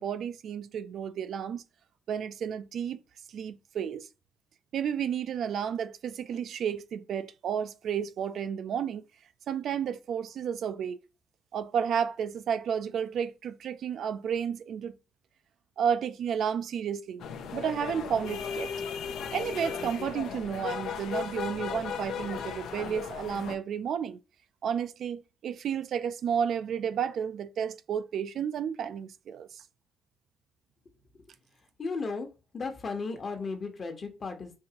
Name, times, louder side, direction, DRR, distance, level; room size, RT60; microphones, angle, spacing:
voice 1, 0.0-1.6 2.1-3.0 3.3-4.1 4.7-9.0 9.5-11.0 11.5-14.9 15.8-17.2 17.5-18.7 19.3-24.2 24.6-29.6, right 8 dB, 65° right, 0.3 m, -32 dB
sound 1, 17.2-23.5, left 7 dB, 80° left, 0.6 m, -36 dB
voice 2, 31.8-32.3 32.5-34.6, left 4 dB, 40° left, 1.0 m, -35 dB
4.6 x 2.8 x 2.9 m
cardioid pair, 90°, 0 cm